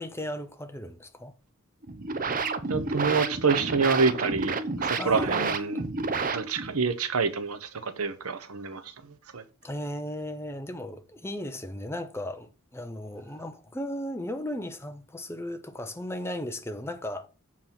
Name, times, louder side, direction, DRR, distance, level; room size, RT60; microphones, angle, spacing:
voice 1, 0.0-1.3 5.0-5.6 9.6-17.3, left 1 dB, 10° left, 0.7 m, -36 dB
sound 1, 1.8-6.8, right 4 dB, 40° right, 0.8 m, -30 dB
voice 2, 2.7-5.8 6.3-8.9 9.3-9.4, right 4 dB, 85° right, 1.0 m, -27 dB
7.5 x 4.6 x 5.8 m
head